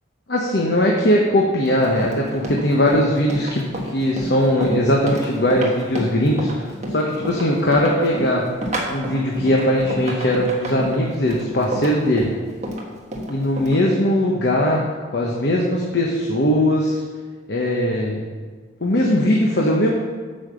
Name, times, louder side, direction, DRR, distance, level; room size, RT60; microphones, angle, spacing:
voice 1, 0.3-3.6 3.9-6.6 6.9-8.5 8.9-12.3 13.3-14.8 15.1-17.0 17.5-18.3 18.8-19.9, left 1 dB, 55° left, -2 dB, 1.1 m, -19 dB
Run, 1.7-13.8, right 1 dB, 35° right, 1.3 m, -30 dB
8.8 x 5.7 x 6.8 m, 1.5 s
head